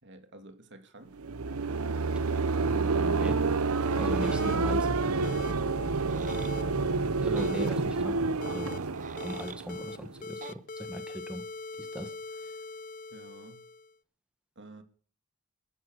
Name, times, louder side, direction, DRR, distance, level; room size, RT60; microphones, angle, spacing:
voice 1, 0.0-1.2 6.0-6.3 13.1-13.6 14.6-14.8, right 2 dB, 55° right, 2.8 m, -49 dB
sound 1, 1.2-10.2, right 3 dB, 85° right, 0.9 m, -29 dB
voice 2, 2.7-3.4 4.0-4.9 7.2-8.2 8.5-8.8 9.2-11.4 11.8-12.1, equal, 5° right, 1.5 m, -38 dB
sound 2, 4.2-4.6 5.2-5.5 6.3-6.6 7.4-7.7 8.4-8.8 9.2-10.0 10.2-13.9, left 3 dB, 40° left, 0.6 m, -41 dB
sound 3, 5.9-6.5 7.4-7.5 8.7-9.7 10.4-10.6, right 7 dB, 35° right, 0.7 m, -45 dB
14.5 x 12.0 x 6.6 m
head